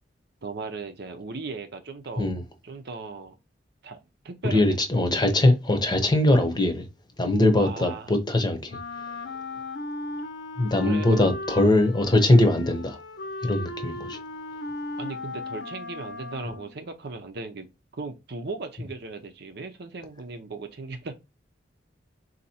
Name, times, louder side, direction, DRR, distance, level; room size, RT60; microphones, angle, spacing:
voice 1, 0.4-2.3 2.6-3.4 3.8-4.0 4.2-4.6 7.6-8.1 10.8-11.4 15.0-17.7 17.9-21.1, right 3 dB, 65° right, 0.7 m, -37 dB
voice 2, 4.4-6.9 7.2-8.8 10.6-13.0 13.4-14.2, left 1 dB, 25° left, 0.9 m, -21 dB
Wind instrument woodwind instrument, 8.7-16.8, left 2 dB, 70° left, 0.7 m, -37 dB
4.0 x 2.9 x 4.3 m
head